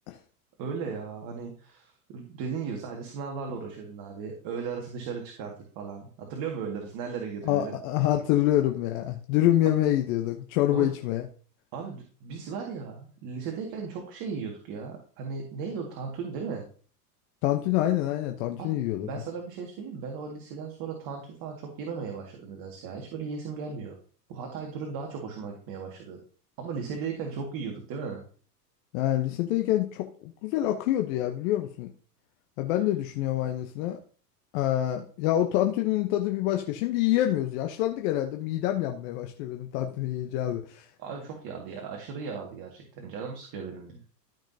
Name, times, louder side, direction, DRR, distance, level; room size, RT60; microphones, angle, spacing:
voice 1, 0.6-7.8 10.7-10.9 11.7-16.7 18.6-18.7 19.0-24.0 24.3-26.2 26.6-28.2 41.0-44.0, right 5 dB, 45° right, 1 dB, 2.0 m, -36 dB
voice 2, 7.5-11.3 17.4-19.1 28.9-31.9 32.6-34.0 34.5-40.9, left 13 dB, 55° left, 4 dB, 1.0 m, -26 dB
13.0 x 5.9 x 2.8 m, 0.41 s
hypercardioid pair, 100°, 49 cm